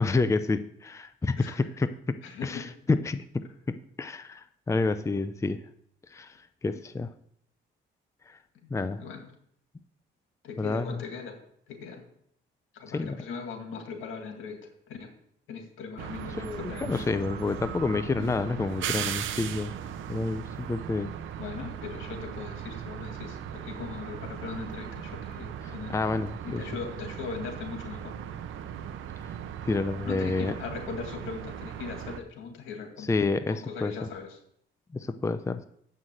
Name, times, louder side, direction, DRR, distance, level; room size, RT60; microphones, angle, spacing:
voice 1, 0.0-5.6 6.1-7.1 8.3-8.4 8.7-9.0 10.6-11.0 12.9-13.2 16.4-19.7 20.1-21.2 25.6-26.6 29.6-30.5 33.1-34.1 34.9-35.6, left 3 dB, 15° left, 11 dB, 0.5 m, -29 dB
voice 2, 2.2-2.7 8.6-8.7 9.0-9.2 10.4-11.4 11.7-12.0 12.7-15.1 15.5-17.1 21.4-26.0 26.4-28.1 30.0-33.1 33.5-34.4, left 5 dB, 85° left, 3 dB, 2.1 m, -39 dB
sound 1, 16.0-32.2, right 9 dB, 80° right, 0.8 m, -38 dB
7.8 x 5.7 x 7.7 m, 0.68 s
cardioid pair, 90°, 20 cm